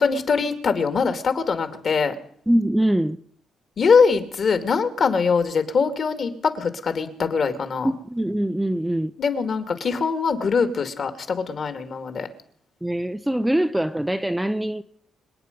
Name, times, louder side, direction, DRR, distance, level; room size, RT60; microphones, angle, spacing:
voice 1, 0.0-2.1 3.8-7.9 9.2-12.3, left 5 dB, 45° left, 2.2 m, -22 dB
voice 2, 2.5-3.2 7.8-9.1 12.8-14.8, right 1 dB, 5° right, 0.6 m, -23 dB
26.5 x 9.3 x 5.3 m
cardioid pair, 130°, 0 cm